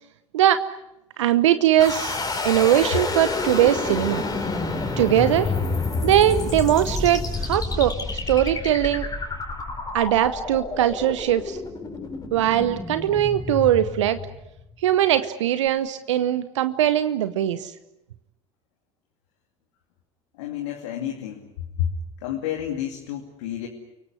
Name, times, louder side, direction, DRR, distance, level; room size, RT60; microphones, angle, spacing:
voice 1, 1.2-2.2 2.4-4.2 5.0-5.5 6.0-8.0 8.3-9.1 9.9-11.6 12.3-14.2 14.8-17.7, right 12 dB, 75° right, 12 dB, 1.0 m, -20 dB
sound 1, 1.8-14.7, left 3 dB, 25° left, 4.6 m, -29 dB
voice 2, 20.3-21.5 21.8-21.9 22.2-23.7, left 10 dB, 70° left, 1 dB, 2.8 m, -30 dB
29.5 x 18.0 x 9.7 m, 0.91 s
hypercardioid pair, 70°, 15 cm